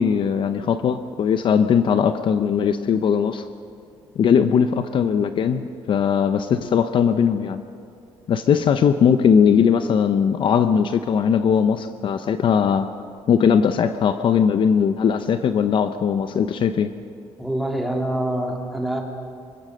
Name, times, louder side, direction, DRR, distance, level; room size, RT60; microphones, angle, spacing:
voice 1, 0.0-3.4 4.2-7.6 8.3-12.9 13.3-16.9, left 7 dB, 55° left, 10 dB, 0.8 m, -19 dB
voice 2, 17.4-19.0, right 1 dB, ahead, 1 dB, 3.0 m, -25 dB
25.5 x 16.0 x 6.6 m, 2.5 s
cardioid pair, 125°, 10 cm